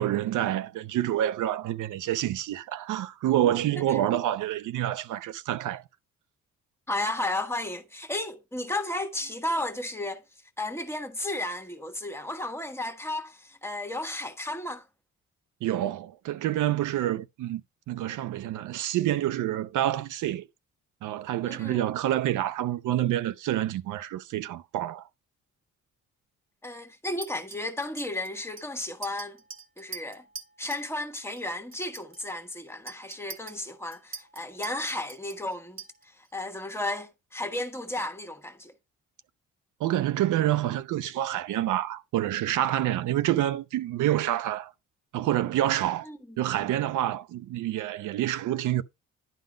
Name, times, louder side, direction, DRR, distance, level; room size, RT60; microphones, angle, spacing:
voice 1, 0.0-5.8 15.6-17.6 17.9-20.5 21.0-25.1 39.8-44.7 45.1-46.1 46.4-48.8, right 13 dB, 80° right, 0.7 m, -27 dB
voice 2, 6.9-10.2 10.6-14.9 21.5-21.9 26.6-29.4 29.8-30.3 30.6-38.7 46.0-46.7, left 1 dB, 10° left, 1.4 m, -34 dB
Chink clink, 27.2-30.9 31.2-31.4 31.7-36.3, right 5 dB, 45° right, 1.6 m, -44 dB
11.0 x 3.8 x 5.0 m
cardioid pair, 90°, 30 cm